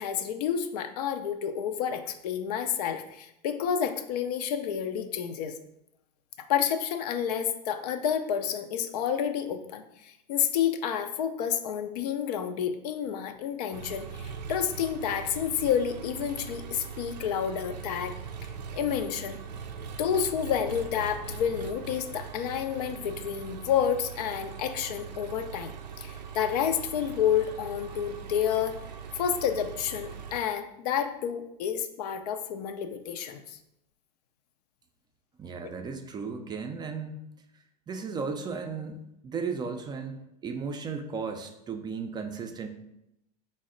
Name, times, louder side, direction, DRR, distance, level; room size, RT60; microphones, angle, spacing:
voice 1, 0.0-5.6 6.4-18.1 18.7-19.4 20.0-28.8 29.1-33.6, left 8 dB, 70° left, 8 dB, 0.4 m, -30 dB
Engine, 13.7-30.4, right 7 dB, 90° right, 0.4 m, -41 dB
voice 2, 35.4-37.2 37.9-42.7, right 5 dB, 20° right, 5 dB, 0.4 m, -35 dB
4.1 x 2.1 x 3.7 m, 0.84 s
hypercardioid pair, 100°, 21 cm